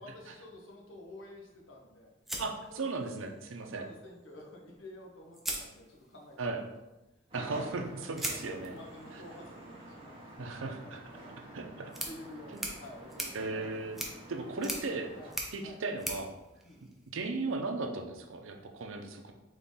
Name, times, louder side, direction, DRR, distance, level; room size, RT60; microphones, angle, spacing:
voice 1, 0.0-2.1 2.7-3.1 3.6-6.7 8.3-10.2 10.6-11.6 12.0-13.8 14.2-14.3 14.6-14.7 15.1-15.3 15.6-15.8 16.6-16.8, left 1 dB, 75° left, 0 dB, 1.0 m, -51 dB
sound 1, 2.3-3.4 4.7-4.8 5.3-6.3 8.2-17.4, right 1 dB, ahead, 0.5 m, -42 dB
voice 2, 2.4-3.9 6.4-6.6 7.3-8.7 10.4-11.0 11.5-11.9 12.5-12.6 13.3-14.0 14.3-15.1 15.5-16.3 17.1-19.3, right 3 dB, 80° right, 4 dB, 0.6 m, -36 dB
sound 2, 7.3-15.3, right 1 dB, 30° right, 1.0 m, -48 dB
3.7 x 3.3 x 4.0 m, 1.0 s
head